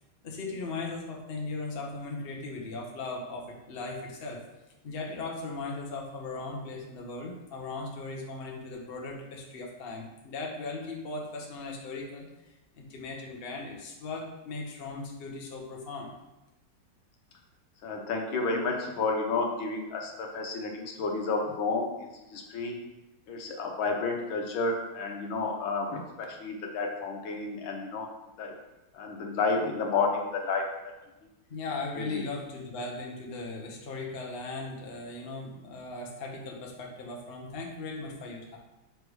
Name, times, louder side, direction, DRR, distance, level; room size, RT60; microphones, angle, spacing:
voice 1, 0.2-4.4 4.8-16.1 31.5-38.6, left 3 dB, 45° left, -1 dB, 0.8 m, -38 dB
voice 2, 17.8-21.9 22.3-22.7 23.3-28.1 28.4-28.5 28.9-30.9 32.0-32.2, left 3 dB, 75° left, 1 dB, 1.7 m, -31 dB
6.4 x 3.4 x 4.7 m, 1.0 s
omnidirectional pair, 2.3 m